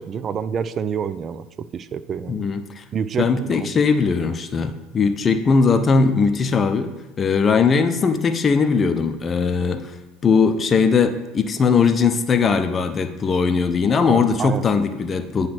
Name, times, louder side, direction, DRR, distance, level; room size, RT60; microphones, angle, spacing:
voice 1, 0.0-2.4 2.9-3.8 14.1-14.7, right 7 dB, 40° right, 15 dB, 0.4 m, -28 dB
voice 2, 2.3-2.8 3.2-6.9 7.2-9.8 10.2-15.5, left 5 dB, 30° left, 9 dB, 0.6 m, -19 dB
9.4 x 3.2 x 4.4 m, 1.1 s
hypercardioid pair, 80°, 0 cm